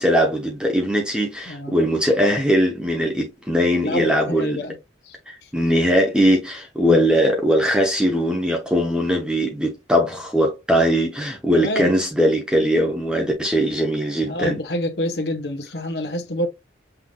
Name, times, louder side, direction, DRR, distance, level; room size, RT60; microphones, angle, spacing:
voice 1, 0.0-4.6 5.3-14.6, equal, 5° right, 0.9 m, -20 dB
voice 2, 1.5-1.8 3.8-4.7 5.1-5.5 6.9-7.0 11.5-11.9 14.3-16.5, equal, 60° left, 1.0 m, -27 dB
5.8 x 3.4 x 2.2 m
head